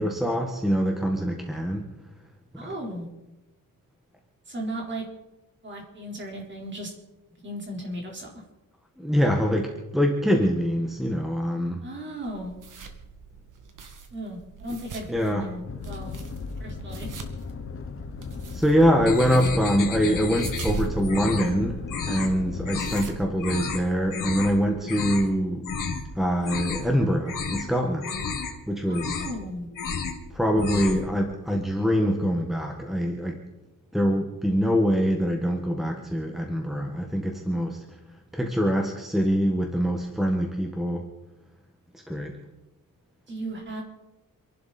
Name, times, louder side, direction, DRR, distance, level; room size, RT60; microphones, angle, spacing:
voice 1, 0.0-1.8 2.6-2.7 9.0-11.8 15.1-15.4 18.5-21.8 22.1-25.7 26.1-28.1 28.7-29.2 30.3-33.4 33.9-38.0 38.3-41.0 42.1-42.4, equal, ahead, 2 dB, 1.4 m, -24 dB
voice 2, 2.6-3.1 4.5-5.0 5.6-6.9 7.4-8.3 11.8-12.6 14.1-16.1 16.6-17.1 28.8-29.7 43.3-43.8, right 1 dB, 30° right, -1 dB, 4.3 m, -36 dB
sound 1, 12.2-24.1, right 5 dB, 60° right, 2.1 m, -41 dB
sound 2, 15.7-22.8, left 5 dB, 40° left, 1.0 m, -37 dB
sound 3, 19.1-20.7 21.0-21.5 21.9-22.3 22.6-23.0 23.4-23.8 24.1-24.5 24.8-25.3 25.6-26.0 26.3-26.9 27.2-27.7 28.0-28.5 28.9-29.4 29.7-30.2 30.5-31.1, left 5 dB, 65° left, 2.8 m, -31 dB
27.5 x 11.5 x 4.3 m, 1.0 s
wide cardioid pair, 175°, 35 cm